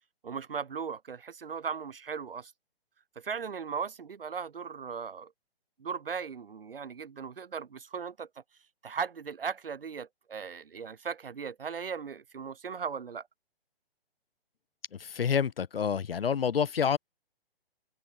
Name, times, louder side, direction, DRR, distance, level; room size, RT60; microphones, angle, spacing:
voice 1, 0.2-2.5 3.2-5.3 5.8-8.3 8.8-13.3, right 6 dB, 65° right, 1.6 m, -37 dB
voice 2, 15.0-17.0, left 7 dB, 70° left, 0.7 m, -28 dB
figure-of-eight pair, 125°, 30 cm